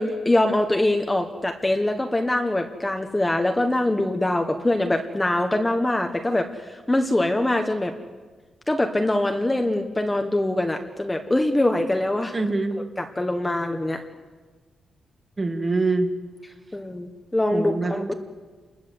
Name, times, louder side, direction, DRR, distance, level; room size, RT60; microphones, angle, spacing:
voice 1, 0.0-7.9 8.7-12.3 13.0-14.0 16.7-18.1, left 1 dB, 10° left, 4 dB, 1.3 m, -23 dB
voice 2, 12.3-12.8 15.4-16.1 17.5-18.1, right 3 dB, 20° right, 5 dB, 2.1 m, -24 dB
29.5 x 20.5 x 7.9 m, 1.4 s
wide cardioid pair, 170°, 0 cm